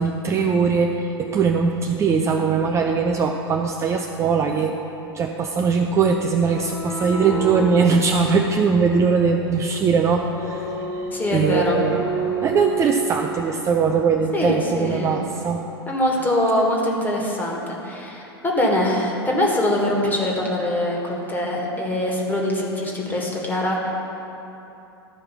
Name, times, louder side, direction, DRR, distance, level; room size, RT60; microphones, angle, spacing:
voice 1, 0.0-4.7 5.1-11.1 11.3-15.6, right 5 dB, 20° right, 3 dB, 0.5 m, -21 dB
sound 1, 6.3-13.3, right 3 dB, 35° left, 1.8 m, -30 dB
voice 2, 11.1-11.8 14.3-15.2 15.9-23.9, left 1 dB, 15° left, -1 dB, 1.7 m, -23 dB
13.0 x 4.8 x 5.8 m, 3.0 s
figure-of-eight pair, 90°, 13 cm